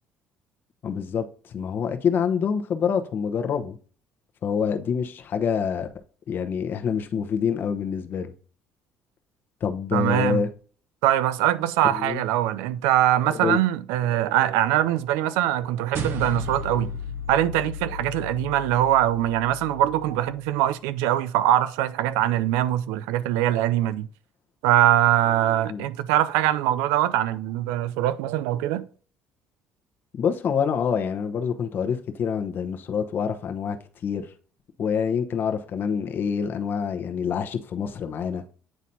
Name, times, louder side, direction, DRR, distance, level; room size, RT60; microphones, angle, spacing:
voice 1, 0.8-3.8 4.4-5.9 6.3-8.3 9.6-10.5 11.9-12.2 13.3-13.6 25.7-25.9 30.2-33.8 34.0-34.3 34.8-38.4, left 7 dB, 50° left, 0.9 m, -26 dB
voice 2, 9.9-10.4 11.0-17.0 17.3-24.1 24.6-28.9, right 13 dB, 90° right, 0.4 m, -22 dB
sound 1, 15.9-20.6, left 2 dB, 60° right, 1.0 m, -34 dB
9.1 x 4.1 x 2.7 m
supercardioid pair, 90°, 4 cm